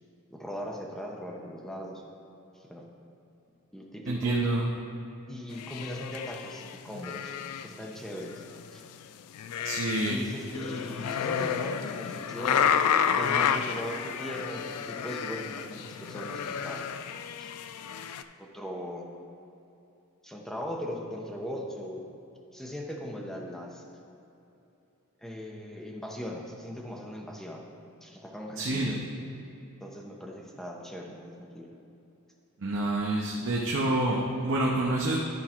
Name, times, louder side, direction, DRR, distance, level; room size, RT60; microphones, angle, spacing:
voice 1, 0.3-2.0 2.7-2.8 3.7-4.4 5.3-7.3 7.6-8.4 8.7-8.8 10.0-12.8 13.1-16.8 17.4-17.5 18.4-19.1 20.2-22.0 22.5-23.8 25.2-27.6 28.0-29.0 29.8-31.7, equal, ahead, -1 dB, 0.8 m, -39 dB
voice 2, 4.1-4.7 9.6-10.2 28.6-28.9 32.6-35.2, right 2 dB, 60° right, -2 dB, 0.8 m, -27 dB
sound 1, 5.5-7.8 8.1-9.0 9.3-18.2, left 7 dB, 90° left, 0.4 m, -31 dB
11.0 x 4.7 x 4.4 m, 2.9 s
head